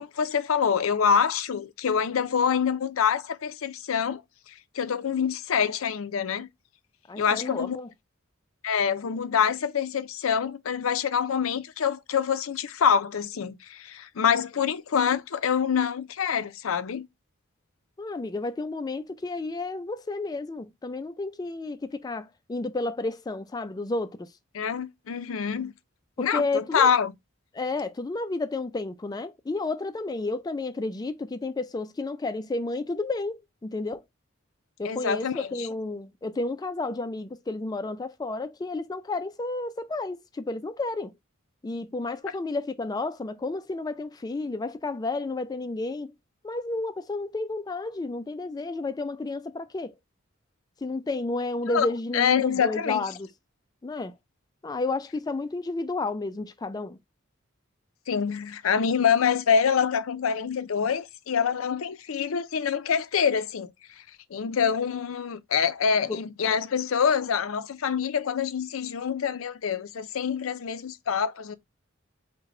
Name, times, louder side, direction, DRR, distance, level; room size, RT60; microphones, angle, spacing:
voice 1, 0.0-4.2 4.7-6.5 7.2-7.8 8.6-17.1 24.5-25.7 26.2-27.1 34.8-35.7 51.7-53.0 58.1-63.7 64.3-71.6, left 7 dB, 85° left, 0.5 m, -26 dB
voice 2, 7.1-7.9 18.0-24.3 26.2-26.9 27.5-34.0 34.8-41.1 41.6-46.1 46.4-49.9 50.8-53.3 53.8-54.1 54.6-57.0 66.1-66.2, left 3 dB, 20° left, 0.3 m, -31 dB
4.7 x 2.2 x 3.7 m
head